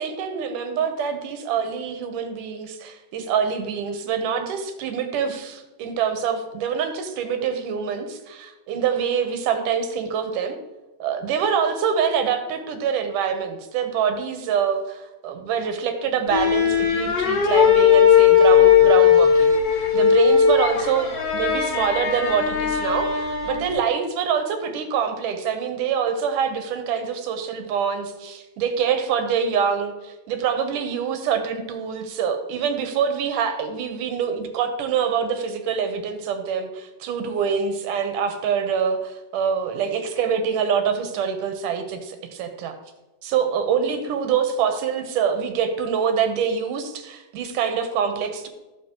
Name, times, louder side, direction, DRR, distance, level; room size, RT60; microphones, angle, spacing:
voice 1, 0.0-10.6 11.0-19.5 19.9-42.8 43.2-48.5, right 7 dB, 85° right, 7 dB, 2.6 m, -25 dB
sound 1, 16.3-23.8, left 7 dB, 60° left, 4.1 m, -17 dB
13.0 x 7.2 x 3.0 m, 1.1 s
omnidirectional pair, 3.6 m